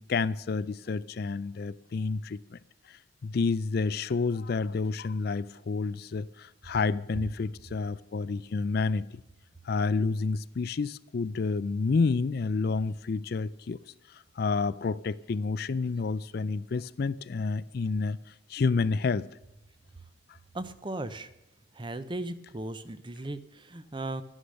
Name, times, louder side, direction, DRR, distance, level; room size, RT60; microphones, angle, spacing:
voice 1, 0.0-2.6 3.2-9.2 9.7-13.8 14.4-18.2 18.5-19.3, left 4 dB, 50° left, 0.4 m, -29 dB
voice 2, 20.5-21.3 21.7-24.2, right 2 dB, 25° right, 0.6 m, -37 dB
12.5 x 10.0 x 6.5 m
head